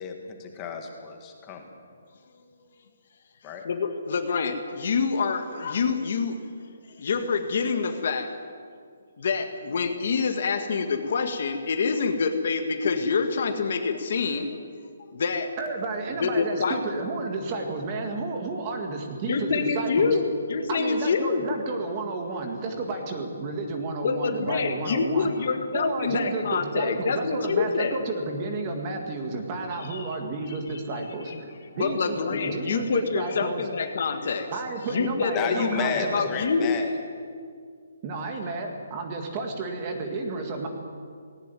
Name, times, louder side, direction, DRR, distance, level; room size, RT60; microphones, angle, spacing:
voice 1, 0.0-1.7 3.4-3.6 35.3-36.9, left 6 dB, 15° left, 3 dB, 1.7 m, -32 dB
voice 2, 3.6-6.4 7.0-8.3 9.2-14.5 15.1-15.5 16.2-16.8 19.3-21.5 24.0-28.0 29.9-30.1 31.7-34.5 34.9-36.8, left 5 dB, 40° left, 7 dB, 1.7 m, -26 dB
voice 3, 15.6-20.2 20.7-33.7 34.5-36.2 38.0-40.7, right 3 dB, 20° right, 3 dB, 1.8 m, -32 dB
19.0 x 18.0 x 9.2 m, 2.1 s
hypercardioid pair, 180°, 0 cm